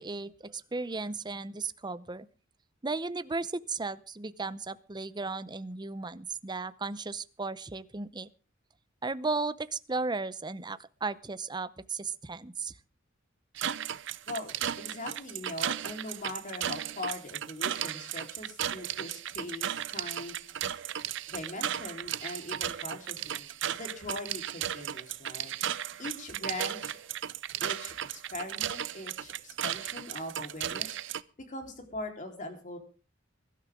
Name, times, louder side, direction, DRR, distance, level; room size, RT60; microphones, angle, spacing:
voice 1, 0.0-2.3 2.8-8.3 9.0-12.7, right 3 dB, 20° right, 15 dB, 0.7 m, -35 dB
sound 1, 13.6-31.2, right 10 dB, 65° right, 0.7 m, -35 dB
voice 2, 14.3-20.6 21.3-25.5 26.0-27.0 27.6-31.0 31.5-32.8, left 1 dB, 40° left, 4 dB, 4.0 m, -41 dB
22.0 x 12.5 x 3.7 m, 0.35 s
head